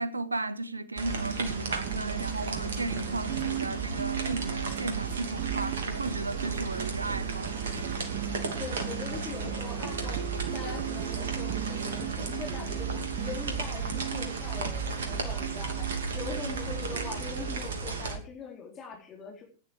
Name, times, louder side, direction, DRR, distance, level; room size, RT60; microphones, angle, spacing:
voice 1, 0.0-7.5, right 2 dB, 80° right, 1.1 m, -35 dB
sound 1, 1.0-18.2, right 4 dB, 65° right, 2.8 m, -34 dB
sound 2, 1.2-17.7, right 15 dB, 50° right, 0.8 m, -39 dB
voice 2, 8.6-10.2 10.5-15.9 16.1-19.4, left 5 dB, 25° left, 3.9 m, -41 dB
16.0 x 9.9 x 4.8 m
figure-of-eight pair, 90°, 0 cm